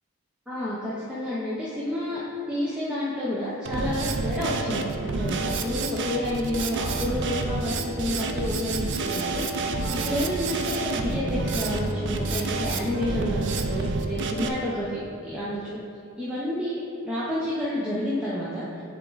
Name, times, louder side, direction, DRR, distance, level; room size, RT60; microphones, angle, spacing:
voice 1, 0.5-2.2 2.5-15.0 15.2-15.8 16.2-18.8, left 1 dB, 5° right, -9 dB, 0.7 m, -30 dB
Drum kit, 3.7-14.5, right 3 dB, 55° right, 0.5 m, -29 dB
10.0 x 3.6 x 3.9 m, 2.6 s
head